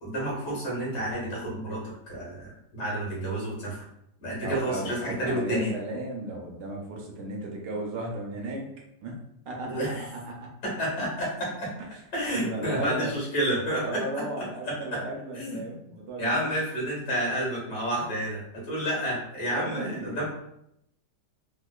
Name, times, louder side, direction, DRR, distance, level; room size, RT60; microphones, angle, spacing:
voice 1, 0.0-1.8 2.1-3.8 4.2-5.7 9.6-10.0 10.6-11.7 12.1-14.0 14.7-15.0 15.3-15.6 16.2-20.2, right 1 dB, 70° left, -5 dB, 2.1 m, -30 dB
voice 2, 4.4-8.6 9.0-9.2 9.5-9.8 10.1-10.5 12.2-13.2 13.8-16.5 19.5-20.2, right 2 dB, 70° right, -1 dB, 1.2 m, -35 dB
4.2 x 2.4 x 2.3 m, 0.79 s
omnidirectional pair, 2.0 m